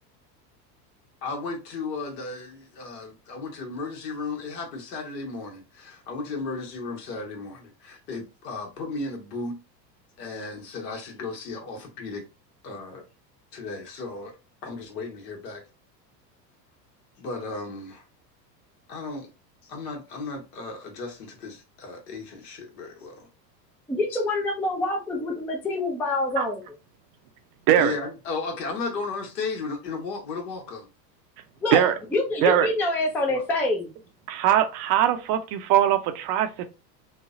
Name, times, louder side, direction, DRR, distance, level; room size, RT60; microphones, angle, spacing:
voice 1, 1.2-9.5 10.2-12.2 12.6-13.0 13.5-14.3 14.6-15.6 17.2-18.0 18.9-19.3 19.7-23.3 27.7-30.9 33.3-33.4, left 3 dB, 75° left, 1.2 m, -35 dB
voice 2, 23.9-26.6 31.6-31.8 32.1-33.9, left 2 dB, 5° left, 0.3 m, -26 dB
voice 3, 34.3-36.7, right 11 dB, 45° right, 0.6 m, -21 dB
3.2 x 2.1 x 2.4 m
hypercardioid pair, 95°, 50 cm